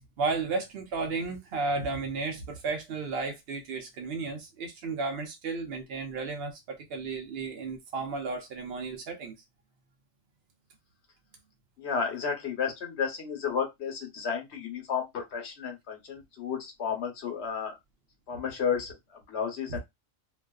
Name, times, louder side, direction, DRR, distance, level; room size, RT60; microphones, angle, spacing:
voice 1, 0.2-9.3 19.7-19.8, right 3 dB, 65° right, 0.7 m, -33 dB
voice 2, 11.8-17.8 18.3-19.8, left 6 dB, 65° left, 1.1 m, -32 dB
2.4 x 2.3 x 2.2 m
omnidirectional pair, 1.2 m